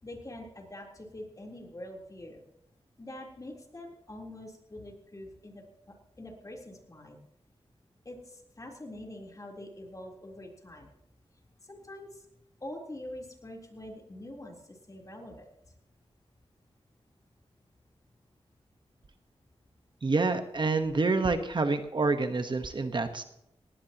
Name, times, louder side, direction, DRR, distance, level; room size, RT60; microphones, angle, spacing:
voice 1, 0.0-2.4 3.0-7.2 8.1-10.9 11.6-12.2 12.6-15.5, left 1 dB, 30° left, 0 dB, 3.8 m, -45 dB
voice 2, 20.0-23.2, right 3 dB, 50° right, 7 dB, 1.2 m, -27 dB
19.0 x 17.0 x 3.0 m, 0.80 s
wide cardioid pair, 85°, 11 cm